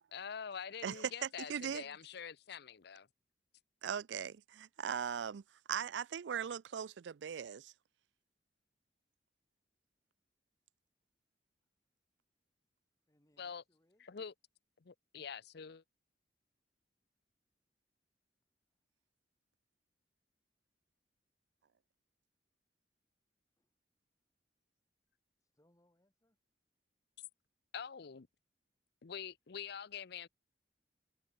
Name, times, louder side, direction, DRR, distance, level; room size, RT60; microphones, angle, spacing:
voice 1, 0.1-3.1 13.4-13.6 14.0-14.3 14.8-15.8 27.7-28.3 29.0-30.3, left 7 dB, 65° left, 0.6 m, -45 dB
voice 2, 0.8-1.8 3.8-5.4 5.7-7.7, right 8 dB, 75° right, 0.4 m, -39 dB
voice 3, 13.1-14.1 21.6-21.7 23.6-23.7 25.4-26.4, left 1 dB, 20° left, 3.0 m, -74 dB
head